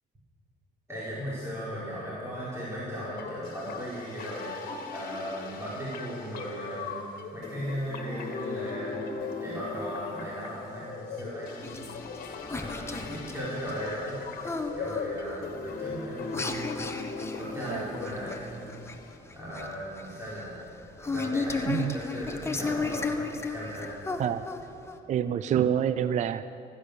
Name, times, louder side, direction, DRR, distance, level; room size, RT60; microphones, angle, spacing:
voice 1, 0.9-7.0 7.3-9.0 9.4-11.7 12.5-14.2 14.7-17.0 17.4-18.7 19.3-20.5 21.0-23.1 23.5-23.9, equal, 15° right, -8 dB, 4.5 m, -37 dB
sound 1, 3.2-19.2, left 4 dB, 55° left, 1.9 m, -39 dB
sound 2, 11.6-25.0, left 3 dB, 15° left, 1.2 m, -35 dB
voice 2, 25.1-26.4, right 9 dB, 45° right, 13 dB, 0.4 m, -27 dB
15.5 x 13.5 x 6.6 m, 2.7 s
cardioid pair, 110°, 17 cm